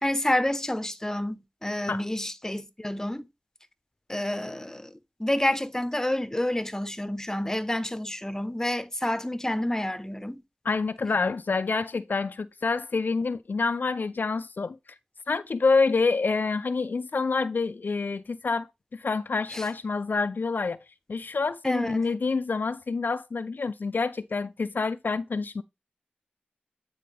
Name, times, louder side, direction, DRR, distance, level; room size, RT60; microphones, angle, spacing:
voice 1, 0.0-3.3 4.1-10.4 19.5-19.7 21.6-22.1, left 1 dB, 15° left, 0.7 m, -29 dB
voice 2, 10.7-14.8 15.3-18.7 18.9-20.8 21.1-25.6, left 4 dB, 70° left, 0.3 m, -27 dB
9.2 x 4.2 x 3.3 m
wide cardioid pair, 45°, 3 cm